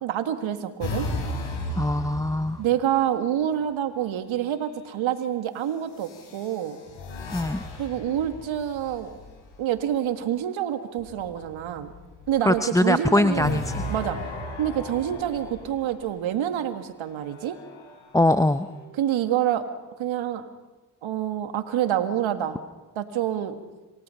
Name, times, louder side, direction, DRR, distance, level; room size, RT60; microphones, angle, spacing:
voice 1, 0.0-1.1 2.6-6.8 7.8-9.1 9.6-11.9 12.3-13.6 13.9-14.2 14.6-17.6 18.9-19.7 20.0-20.5 21.0-22.6 23.0-23.6, right 10 dB, 65° right, 9 dB, 1.8 m, -27 dB
sound 1, 0.8-3.1 4.3-4.8 5.9-9.3 13.3-16.2 17.0-18.8, left 1 dB, 70° left, 4.8 m, -36 dB
voice 2, 1.8-2.6 7.3-7.6 12.5-13.8 18.1-18.7, left 1 dB, 5° left, 11 dB, 0.7 m, -22 dB
sound 2, 8.0-10.3 11.0-13.3 14.3-16.5, left 4 dB, 90° left, 6.5 m, -52 dB
27.5 x 18.0 x 5.8 m, 1.2 s
hypercardioid pair, 45°, 49 cm